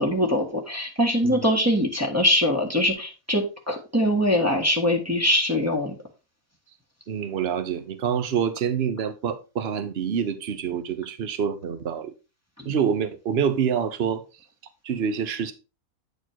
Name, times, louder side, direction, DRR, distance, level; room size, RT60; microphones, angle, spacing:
voice 1, 0.0-6.0 12.6-12.7, equal, 10° right, 1.7 m, -23 dB
voice 2, 7.1-12.1 12.7-14.2 14.8-15.5, right 7 dB, 50° right, 1.1 m, -26 dB
9.2 x 4.3 x 4.5 m
omnidirectional pair, 1.5 m